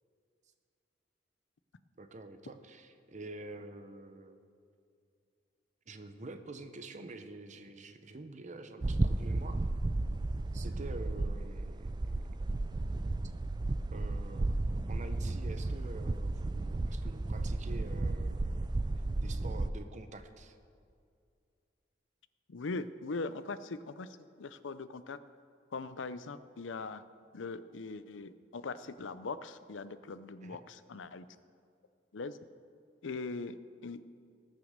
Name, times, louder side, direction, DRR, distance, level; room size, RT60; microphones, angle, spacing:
voice 1, 2.0-4.4 5.9-9.6 10.5-12.3 13.9-14.5 14.9-18.7 19.2-20.6 30.4-30.6, right 2 dB, 40° right, 9 dB, 0.8 m, -47 dB
sound 1, 8.8-19.7, right 2 dB, 25° right, 0.3 m, -33 dB
voice 2, 22.5-25.2 25.7-27.0 27.3-31.3 32.1-32.4 33.0-34.2, left 3 dB, 80° left, 14 dB, 0.6 m, -41 dB
19.0 x 6.4 x 6.5 m, 2.4 s
head